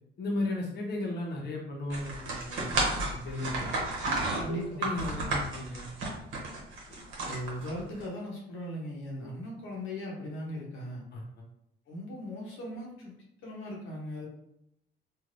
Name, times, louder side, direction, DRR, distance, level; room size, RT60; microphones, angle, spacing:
voice 1, 0.2-3.7 4.4-5.9 9.2-9.3 11.1-11.4, left 2 dB, 55° left, -2 dB, 0.9 m, -35 dB
sound 1, 1.9-8.0, right 2 dB, 80° right, 0.9 m, -32 dB
voice 2, 4.4-4.9 6.9-11.0 11.9-13.1 13.4-14.3, equal, 85° left, -3 dB, 0.9 m, -38 dB
3.2 x 2.5 x 2.5 m, 0.76 s
cardioid pair, 90°, 20 cm